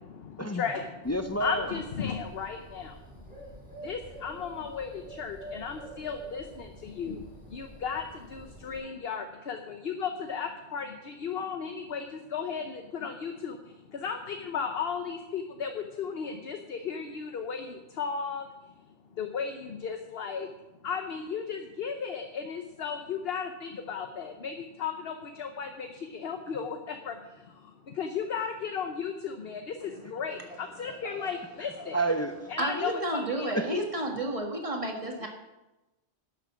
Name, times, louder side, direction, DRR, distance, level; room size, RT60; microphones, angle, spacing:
voice 1, 0.0-1.0 1.4-3.0 3.7-18.5 19.1-20.5 20.8-32.0 32.5-33.8, left 6 dB, 60° left, 6 dB, 1.0 m, -35 dB
Bird, 1.0-8.8, right 2 dB, 5° right, 5.2 m, -47 dB
voice 2, 1.1-1.7 31.9-32.5 33.5-33.7 35.2-35.3, right 2 dB, 25° left, 7 dB, 0.3 m, -29 dB
voice 3, 30.9-31.3 31.8-31.9 32.6-35.3, right 1 dB, 30° right, 1 dB, 1.9 m, -32 dB
11.0 x 6.7 x 7.7 m, 1.0 s
omnidirectional pair, 1.2 m